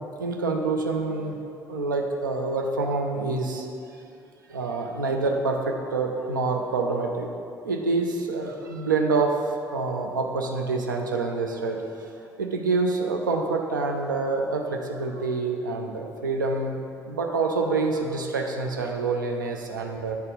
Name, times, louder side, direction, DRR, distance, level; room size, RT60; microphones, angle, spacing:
voice 1, 0.0-1.4 1.7-3.7 4.5-7.3 7.6-9.4 9.7-11.8 12.4-16.8 17.1-20.2, right 3 dB, 80° right, 2 dB, 0.5 m, -26 dB
9.2 x 4.1 x 5.0 m, 2.6 s
figure-of-eight pair, 45°, 10 cm